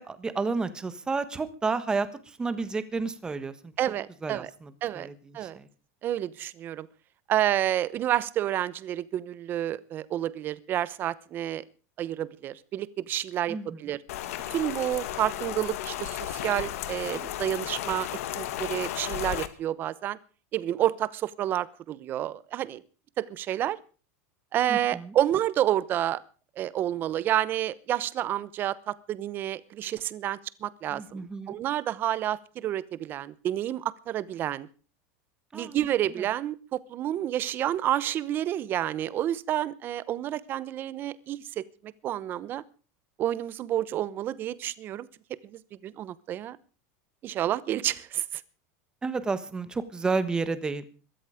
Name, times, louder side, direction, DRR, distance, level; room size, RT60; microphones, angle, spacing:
voice 1, 0.0-3.7 4.2-5.1 5.4-5.7 13.5-13.8 24.7-25.1 30.9-31.5 35.5-35.8 49.0-50.8, right 4 dB, 10° right, 13 dB, 1.3 m, -31 dB
voice 2, 3.8-4.5 4.8-5.6 6.0-6.9 7.3-11.6 12.0-14.0 14.5-20.2 20.5-22.8 23.2-23.8 24.5-26.2 26.6-34.7 35.5-42.6 43.2-45.1 45.4-46.6 47.2-48.4, right 12 dB, 25° right, 18 dB, 0.9 m, -29 dB
Rain, 14.1-19.5, left 13 dB, 75° left, 1.9 m, -34 dB
22.0 x 13.0 x 5.0 m, 0.38 s
supercardioid pair, 170°, 8 cm